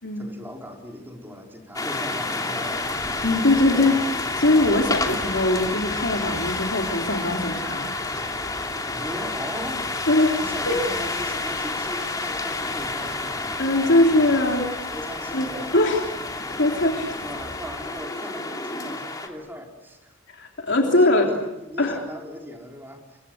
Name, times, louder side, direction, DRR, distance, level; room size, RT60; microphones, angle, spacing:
voice 1, 0.2-3.2 8.9-9.9 10.4-13.5 14.8-15.7 17.2-20.2 20.8-23.2, equal, 10° right, 1 dB, 4.8 m, -38 dB
sound 1, 1.7-19.3, left 2 dB, 20° left, 2.9 m, -29 dB
voice 2, 3.2-7.9 10.1-10.4 10.7-10.8 13.6-14.7 15.3-15.5 15.7-16.2 16.5-17.1 20.3-21.3 21.8-22.0, left 2 dB, 60° left, 1 dB, 3.4 m, -21 dB
29.0 x 24.5 x 8.0 m, 0.98 s
head